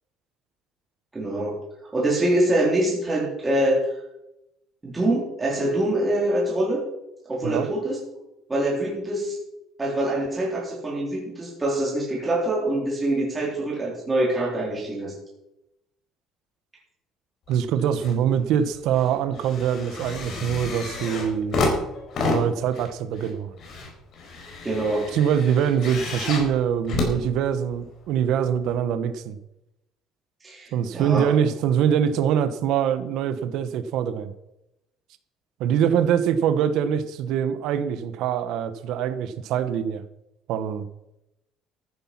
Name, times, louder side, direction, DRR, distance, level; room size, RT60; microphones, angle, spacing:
voice 1, 1.1-1.6 1.9-3.8 4.8-6.8 7.3-8.0 8.5-9.4 9.8-15.1 24.6-25.1 30.4-31.3, right 1 dB, 15° right, -3 dB, 3.8 m, -24 dB
sound 1, 17.5-18.2 18.5-27.9 28.7-28.8, left 3 dB, 45° left, 4.4 m, -30 dB
voice 2, 17.5-21.6 22.2-23.5 25.1-29.4 30.7-34.3 35.6-40.0 40.5-40.9, right 8 dB, 65° right, 12 dB, 1.1 m, -24 dB
14.0 x 9.9 x 5.9 m, 0.87 s
cardioid pair, 155°, 0 cm